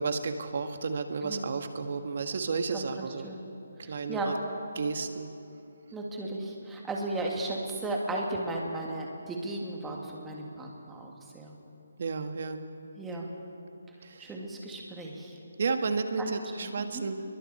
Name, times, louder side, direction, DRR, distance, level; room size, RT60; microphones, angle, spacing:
voice 1, 0.0-3.3 3.9-4.4 4.7-5.3 12.0-12.6 14.0-14.3 15.6-17.2, right 4 dB, 50° right, 7 dB, 1.7 m, -32 dB
voice 2, 2.7-3.4 3.8-4.4 5.9-11.6 13.0-13.3 14.2-15.4 16.2-16.3 16.6-17.0, right 2 dB, 5° right, -1 dB, 2.4 m, -35 dB
29.0 x 22.5 x 4.4 m, 2.7 s
hypercardioid pair, 165°, 0 cm